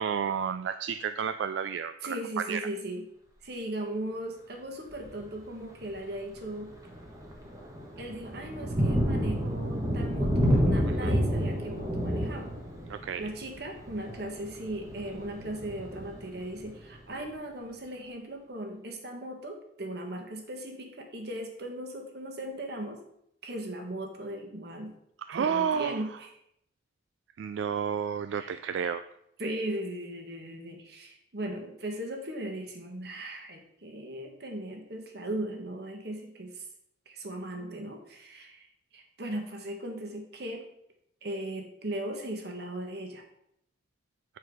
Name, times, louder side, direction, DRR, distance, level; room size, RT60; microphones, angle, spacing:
voice 1, 0.0-2.6 10.9-11.1 12.9-13.3 25.3-26.0 27.4-29.0, right 7 dB, 80° right, 10 dB, 0.3 m, -31 dB
voice 2, 2.0-3.0 3.4-6.7 8.0-12.5 13.2-23.0 23.4-24.9 25.3-26.3 28.3-28.5 29.4-36.7 37.1-38.7 38.9-40.6 41.2-43.2, right 1 dB, 60° right, 3 dB, 1.4 m, -38 dB
Thunder, 4.9-5.2 5.8-5.9 6.4-16.9, equal, 20° right, 1.2 m, -30 dB
8.0 x 4.6 x 4.7 m, 0.77 s
head